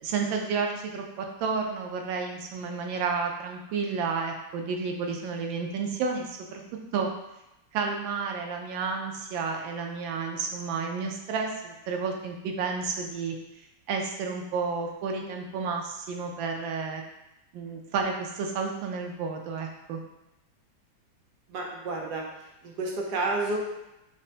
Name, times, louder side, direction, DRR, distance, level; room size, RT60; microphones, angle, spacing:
voice 1, 0.0-6.6 6.9-7.1 7.7-13.4 13.9-17.0 17.5-20.0, right 5 dB, 85° right, 2 dB, 1.3 m, -31 dB
voice 2, 21.5-22.2 22.6-23.6, right 2 dB, 70° right, -1 dB, 1.1 m, -30 dB
5.1 x 2.1 x 2.7 m, 0.91 s
omnidirectional pair, 2.1 m